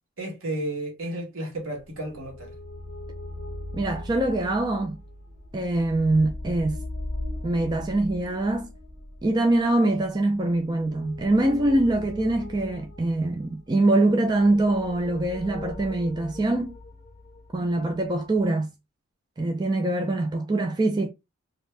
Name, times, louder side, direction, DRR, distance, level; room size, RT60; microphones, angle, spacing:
voice 1, 0.2-2.5, right 1 dB, 85° right, 1.3 m, -32 dB
sound 1, 1.7-18.4, left 1 dB, 30° left, 0.6 m, -40 dB
voice 2, 3.7-5.0 5.5-6.8 7.4-8.7 9.2-16.8 17.5-18.7 19.4-21.1, right 2 dB, 20° right, 0.3 m, -24 dB
2.6 x 2.5 x 3.2 m
head